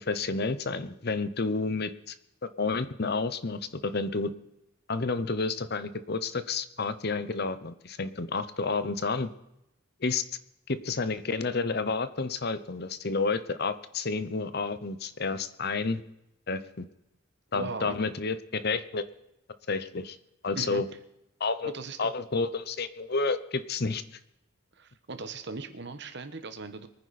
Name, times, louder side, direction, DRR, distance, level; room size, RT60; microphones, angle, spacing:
voice 1, 0.0-2.1 2.6-4.3 4.9-9.3 10.0-10.2 10.7-16.0 16.5-16.9 17.5-19.0 19.7-20.2 20.4-20.8 21.4-21.7 22.0-24.0, left 4 dB, 50° left, 13 dB, 0.9 m, -30 dB
voice 2, 17.5-18.0 20.5-20.8 21.6-22.1 24.8-26.9, right 3 dB, 55° right, 10 dB, 1.3 m, -38 dB
23.5 x 9.8 x 4.3 m, 0.85 s
head